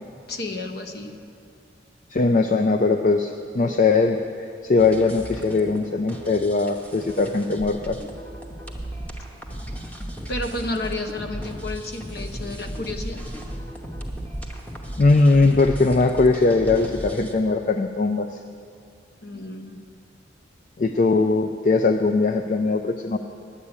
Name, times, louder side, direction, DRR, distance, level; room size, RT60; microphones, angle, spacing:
voice 1, 0.3-1.1 10.3-13.2 19.2-19.8, left 2 dB, 60° left, 5 dB, 1.0 m, -31 dB
voice 2, 2.1-8.0 15.0-18.3 20.8-23.2, left 3 dB, 45° left, 5 dB, 0.4 m, -20 dB
sound 1, 4.8-17.3, equal, 10° left, 0.9 m, -35 dB
9.9 x 8.3 x 8.6 m, 2.4 s
head